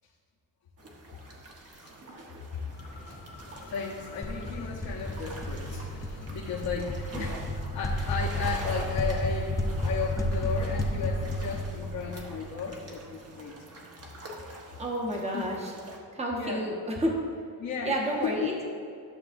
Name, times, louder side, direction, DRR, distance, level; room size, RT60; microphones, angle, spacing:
sound 1, 0.8-16.0, right 1 dB, 40° right, 1.1 m, -46 dB
sound 2, 2.7-11.5, left 2 dB, 85° left, 1.7 m, -49 dB
voice 1, 3.6-13.6 15.3-15.5 16.4-16.7 17.6-18.6, left 5 dB, 65° left, -5 dB, 1.0 m, -35 dB
sound 3, 4.2-12.9, left 1 dB, 10° left, 0.4 m, -32 dB
voice 2, 14.8-15.7 16.1-17.2 17.8-18.6, right 1 dB, 15° right, -1 dB, 1.0 m, -30 dB
12.0 x 7.0 x 2.6 m, 2.5 s
wide cardioid pair, 175°, 38 cm